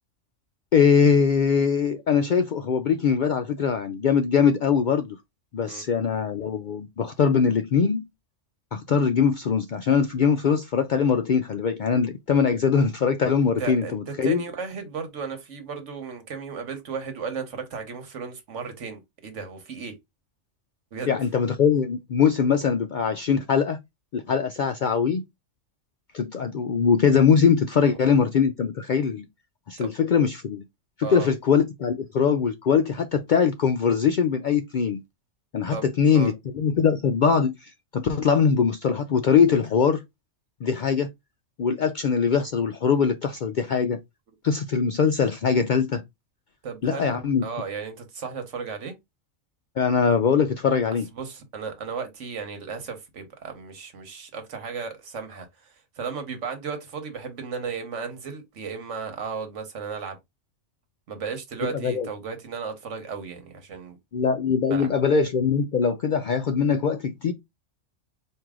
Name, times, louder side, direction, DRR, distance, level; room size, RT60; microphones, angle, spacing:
voice 1, 0.7-5.2 5.5-8.0 8.7-14.4 21.1-23.8 24.1-25.2 26.1-29.3 29.7-30.6 31.0-35.0 35.5-40.0 40.6-41.1 41.6-44.0 44.4-46.0 46.8-47.4 49.8-51.1 61.8-62.1 64.1-67.3, left 6 dB, 65° left, 0.5 m, -22 dB
voice 2, 13.4-19.9 20.9-21.1 27.7-28.0 29.8-29.9 31.0-31.3 35.7-36.3 46.6-47.2 47.4-48.9 51.1-60.2 61.1-64.0 64.7-64.9, right 5 dB, 75° right, 1.4 m, -35 dB
4.6 x 2.7 x 3.6 m
omnidirectional pair, 1.3 m